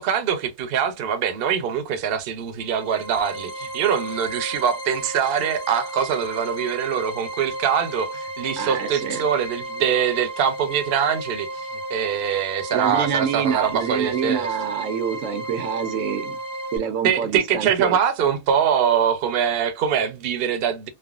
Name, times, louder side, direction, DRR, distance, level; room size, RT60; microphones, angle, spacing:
voice 1, 0.0-11.5 11.9-14.5 17.0-20.9, right 8 dB, 60° right, 0.7 m, -23 dB
sound 1, 2.6-16.8, right 1 dB, 40° left, 0.5 m, -33 dB
voice 2, 8.6-9.2 12.7-16.4 16.7-18.0, right 8 dB, 85° right, 1.0 m, -26 dB
3.3 x 2.1 x 2.3 m
omnidirectional pair, 1.3 m